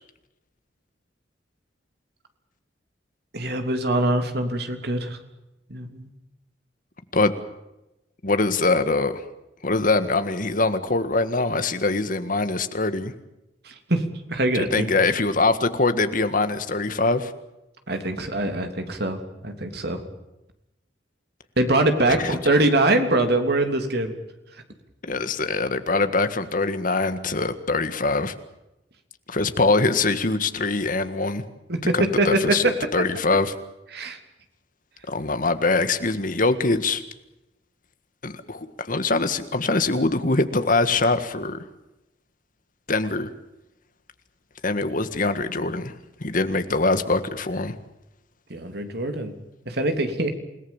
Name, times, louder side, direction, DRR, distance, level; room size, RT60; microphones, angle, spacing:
voice 1, 3.3-5.2 5.7-6.1 13.6-14.0 14.3-14.9 17.9-19.2 19.4-20.0 21.6-24.1 31.7-32.3 32.6-32.7 33.9-34.2 48.5-49.3 49.6-50.3, right 2 dB, 60° right, 6 dB, 3.2 m, -23 dB
voice 2, 8.2-9.2 9.6-13.1 14.5-17.3 22.1-22.3 25.1-28.3 29.3-31.4 31.9-33.5 35.1-37.0 38.2-41.6 42.9-43.3 44.6-45.9 46.2-47.7, left 3 dB, 45° left, 10 dB, 1.7 m, -23 dB
28.5 x 18.5 x 7.3 m, 0.94 s
head